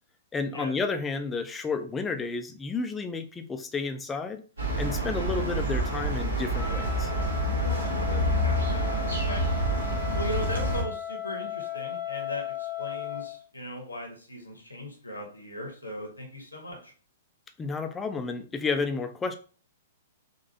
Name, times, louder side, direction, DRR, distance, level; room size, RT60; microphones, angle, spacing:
voice 1, 0.3-4.4 4.8-7.1 17.6-19.4, left 4 dB, 15° left, 7 dB, 0.4 m, -31 dB
sound 1, 4.6-10.8, right 1 dB, 70° right, 1.4 m, -27 dB
Wind instrument woodwind instrument, 6.6-13.4, left 10 dB, 20° right, 1.6 m, -37 dB
voice 2, 8.4-8.8 9.1-9.4 10.1-16.9, left 1 dB, 80° left, 3 dB, 1.0 m, -38 dB
3.9 x 2.5 x 2.8 m, 0.39 s
figure-of-eight pair, 110°, 0 cm